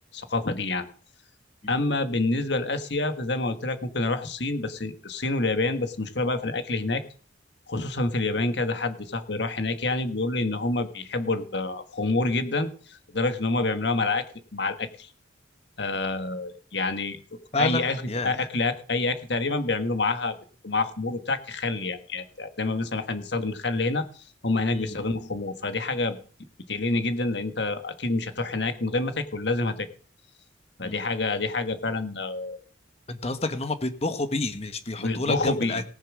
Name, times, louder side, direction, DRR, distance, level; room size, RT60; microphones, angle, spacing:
voice 1, 0.1-0.9 1.7-7.0 7.7-14.2 14.5-15.1 15.8-17.2 17.6-18.0 18.2-20.4 20.6-24.0 24.4-26.2 26.7-29.9 30.8-32.6 35.0-35.8, left 2 dB, 65° left, 9 dB, 1.6 m, -27 dB
voice 2, 17.5-18.4 24.7-25.0 30.8-31.0 33.1-35.8, left 2 dB, 35° left, 10 dB, 1.2 m, -29 dB
18.5 x 7.4 x 6.3 m, 0.43 s
head